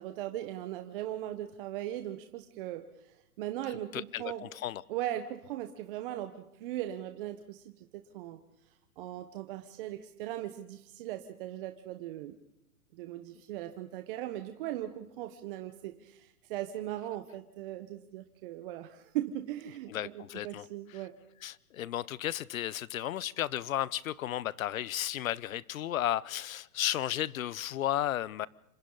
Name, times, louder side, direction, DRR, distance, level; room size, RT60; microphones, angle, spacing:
voice 1, 0.0-4.5 4.9-8.4 9.0-12.4 12.9-21.1, right 13 dB, 35° right, 1.2 m, -39 dB
voice 2, 3.9-4.8 19.9-20.6 21.4-28.5, left 12 dB, 65° left, 0.9 m, -34 dB
27.5 x 25.5 x 4.0 m
hypercardioid pair, 145°, 45 cm